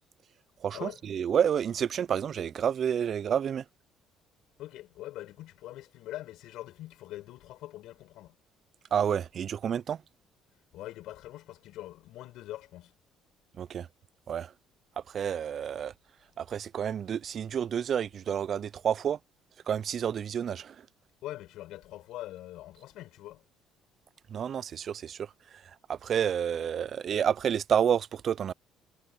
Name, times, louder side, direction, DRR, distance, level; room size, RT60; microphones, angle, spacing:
voice 1, 0.6-3.6 8.9-10.0 13.6-13.9 14.3-14.5 15.1-15.9 16.4-19.2 19.7-20.8 24.3-25.3 25.9-28.5, right 8 dB, 45° right, 0.3 m, -29 dB
voice 2, 4.6-8.4 10.7-12.9 21.2-23.4, left 15 dB, 75° left, 6.7 m, -43 dB
cardioid pair, 135°, 0 cm